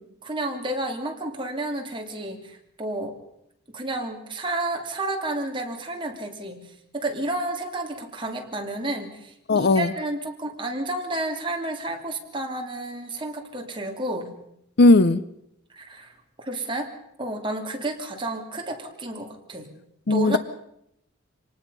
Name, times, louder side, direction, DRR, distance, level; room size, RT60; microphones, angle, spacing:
voice 1, 0.2-3.2 3.7-6.7 6.9-14.3 15.7-16.9 17.2-19.7 20.1-20.4, right 2 dB, 25° right, 2 dB, 2.7 m, -31 dB
voice 2, 9.5-9.9 14.8-15.2 20.1-20.4, left 2 dB, 55° left, 16 dB, 0.7 m, -16 dB
26.0 x 19.0 x 5.5 m, 0.78 s
head